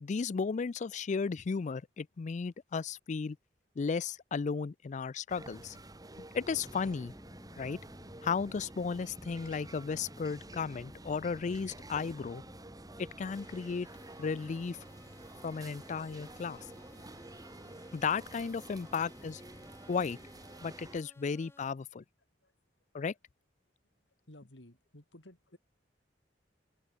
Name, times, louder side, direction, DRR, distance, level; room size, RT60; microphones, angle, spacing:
voice 1, 0.0-3.4 3.8-5.8 6.3-7.1 7.6-7.8 8.2-12.4 13.0-13.9 14.2-14.8 15.4-16.7 17.9-19.4 19.9-20.2 20.6-22.0 22.9-23.1, left 5 dB, 45° left, 0.4 m, -34 dB
sound 1, 5.3-21.0, right 1 dB, 20° right, 2.6 m, -50 dB
sound 2, 6.3-21.7, left 1 dB, 15° left, 1.2 m, -56 dB
voice 2, 24.3-25.6, left 1 dB, 90° left, 3.4 m, -55 dB
open air
head